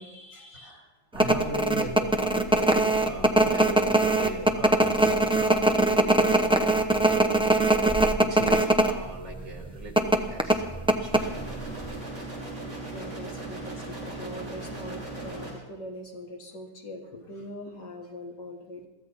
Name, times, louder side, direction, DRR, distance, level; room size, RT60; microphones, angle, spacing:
voice 1, 0.0-0.8 12.9-18.9, left 1 dB, 75° left, 0 dB, 3.0 m, -42 dB
voice 2, 0.5-6.1 8.2-11.4, right 1 dB, 80° right, 1 dB, 3.7 m, -39 dB
sound 1, 1.2-8.9 9.2-9.3 10.0-11.6 11.9-12.0, right 2 dB, 5° right, 0.5 m, -21 dB
sound 2, 11.1-15.5, right 2 dB, 40° right, 8.0 m, -37 dB
22.5 x 15.5 x 4.2 m, 1.0 s
omnidirectional pair, 1.9 m